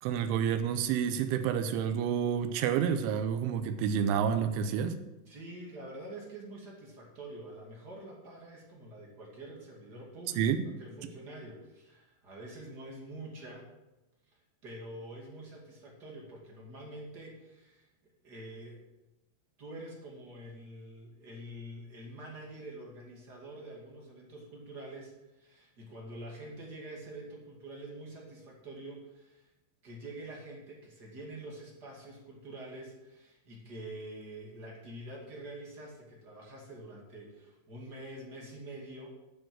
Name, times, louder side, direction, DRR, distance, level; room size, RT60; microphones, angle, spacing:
voice 1, 0.0-5.0 10.4-10.7, right 8 dB, 90° right, 8 dB, 3.1 m, -29 dB
voice 2, 5.2-13.7 14.6-17.9 18.2-18.8 19.6-29.5 29.8-39.1, right 1 dB, 35° right, -2 dB, 1.8 m, -46 dB
12.0 x 7.6 x 6.2 m, 0.99 s
omnidirectional pair, 5.5 m